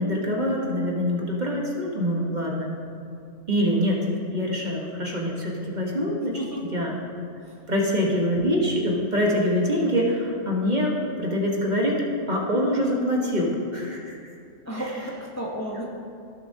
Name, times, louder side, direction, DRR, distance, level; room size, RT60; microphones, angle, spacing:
voice 1, 0.0-2.7 3.5-6.4 6.7-7.0 7.7-14.2, equal, 40° right, -2 dB, 1.2 m, -25 dB
voice 2, 14.6-15.8, right 1 dB, 15° left, -3 dB, 0.8 m, -32 dB
15.5 x 7.0 x 2.7 m, 2.5 s
omnidirectional pair, 1.3 m